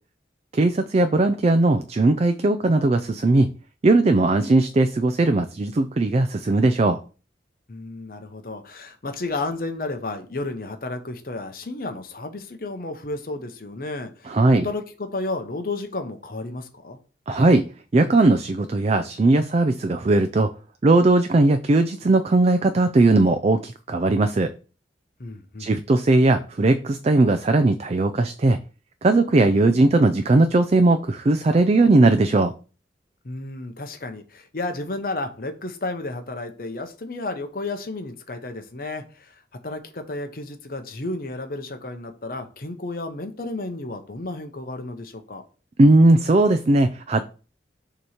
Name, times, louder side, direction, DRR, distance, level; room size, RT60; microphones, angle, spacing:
voice 1, 0.5-3.5 3.8-7.0 14.3-14.7 17.3-17.7 17.9-20.5 20.8-24.5 25.6-28.6 29.0-32.5 45.8-47.2, right 2 dB, 35° right, 0.4 m, -18 dB
voice 2, 7.7-14.4 14.6-17.0 25.2-25.7 33.2-39.3 39.6-45.4, left 2 dB, 50° left, 0.8 m, -32 dB
6.8 x 3.0 x 4.9 m
head